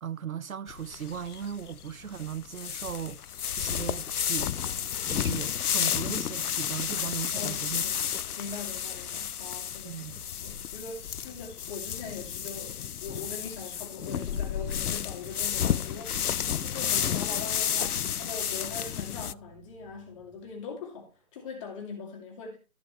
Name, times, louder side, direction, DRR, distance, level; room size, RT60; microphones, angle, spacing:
voice 1, 0.0-4.5 5.1-7.8 9.8-10.2, right 8 dB, 65° right, 0.7 m, -37 dB
sound 1, 0.7-19.3, left 9 dB, 90° left, 0.5 m, -32 dB
Growling, 3.3-7.0 7.3-9.7 10.2-16.1 16.4-17.1 17.6-21.3, equal, 5° left, 4.4 m, -57 dB
voice 2, 8.4-22.6, left 5 dB, 20° left, 2.3 m, -42 dB
13.0 x 7.0 x 3.1 m
figure-of-eight pair, 150°, 44 cm